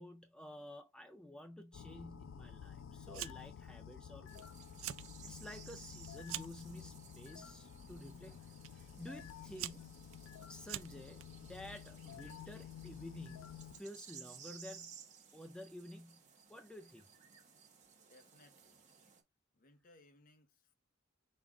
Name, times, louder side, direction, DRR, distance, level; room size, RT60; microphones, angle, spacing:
voice 1, 0.0-4.5 5.2-10.0 10.5-14.9 15.3-16.2 16.5-17.1, left 1 dB, 5° left, 0.4 m, -52 dB
sound 1, 1.7-13.8, left 8 dB, 90° left, 0.4 m, -52 dB
Fire, 3.1-3.6 3.9-4.4 4.7-5.1 5.5-6.6 7.4-7.8 8.6-8.7 9.3-11.2, right 13 dB, 80° right, 0.4 m, -45 dB
sound 2, 4.3-19.2, right 7 dB, 35° right, 0.9 m, -58 dB
voice 2, 18.0-18.8 19.5-20.7, left 2 dB, 45° left, 0.7 m, -65 dB
5.3 x 2.4 x 3.4 m
head